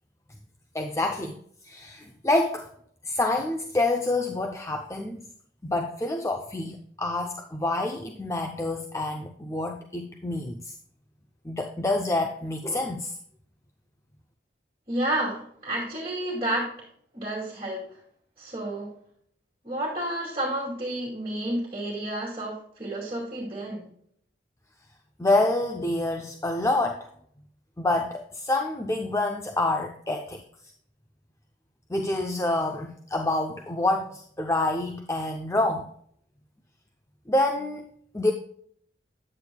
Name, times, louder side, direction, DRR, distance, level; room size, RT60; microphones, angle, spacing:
voice 1, 0.7-1.4 1.6-2.7 3.0-5.3 5.6-10.7 11.4-13.1 25.2-27.1 27.8-30.4 31.9-35.8 37.3-38.3, left 2 dB, 15° left, 4 dB, 0.5 m, -27 dB
voice 2, 14.9-16.7 17.1-17.8 18.4-18.9 19.6-23.8, right 1 dB, 30° right, -4 dB, 2.3 m, -30 dB
9.7 x 8.6 x 2.2 m, 0.63 s
head